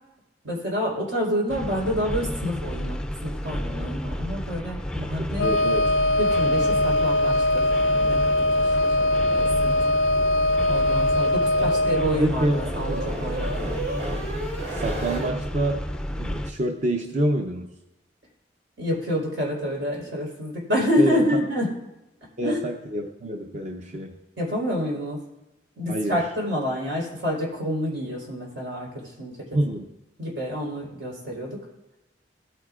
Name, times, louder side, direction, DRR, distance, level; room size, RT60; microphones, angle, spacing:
voice 1, 0.4-5.5 6.2-7.7 8.0-9.8 10.7-13.7 18.8-21.7 22.4-22.6 24.4-25.2 25.8-29.6 30.2-31.6, equal, 90° right, -2 dB, 4.0 m, -28 dB
sound 1, 1.5-16.5, equal, 5° left, 0.4 m, -31 dB
Wind instrument woodwind instrument, 5.4-12.1, left 1 dB, 85° left, 0.4 m, -21 dB
voice 2, 5.4-5.9 11.6-11.7 12.1-12.6 12.9-13.0 14.7-15.9 16.2-17.7 21.0-21.2 22.4-24.1 25.9-26.2 29.5-29.9, right 1 dB, 40° right, 3 dB, 0.7 m, -26 dB
sound 2, 10.7-15.3, right 1 dB, 70° right, 2.7 m, -34 dB
17.5 x 9.2 x 2.4 m, 0.97 s
head